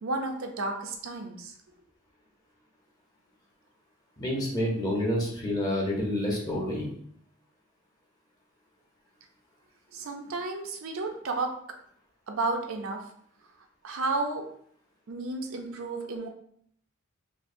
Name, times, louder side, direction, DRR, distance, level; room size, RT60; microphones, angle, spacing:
voice 1, 0.0-1.6 9.9-11.6 12.3-13.1 13.8-14.5 15.1-16.3, right 3 dB, 75° right, 4 dB, 0.5 m, -32 dB
voice 2, 4.2-6.9, left 1 dB, 20° left, -2 dB, 0.8 m, -28 dB
4.5 x 2.0 x 2.6 m, 0.64 s
head